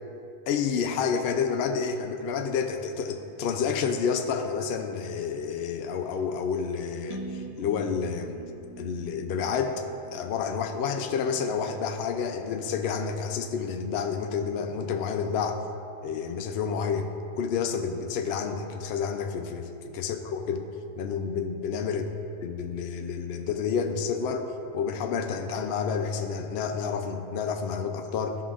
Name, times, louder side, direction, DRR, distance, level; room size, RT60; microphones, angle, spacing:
voice 1, 0.5-8.4 8.8-9.8 10.1-15.6 16.0-17.1 17.4-20.6 21.0-22.0 22.4-24.4 24.7-28.4, left 6 dB, 75° left, 5 dB, 0.5 m, -29 dB
sound 1, 7.1-11.0, right 2 dB, 30° right, 0.6 m, -43 dB
14.0 x 5.7 x 2.5 m, 2.7 s
omnidirectional pair, 1.6 m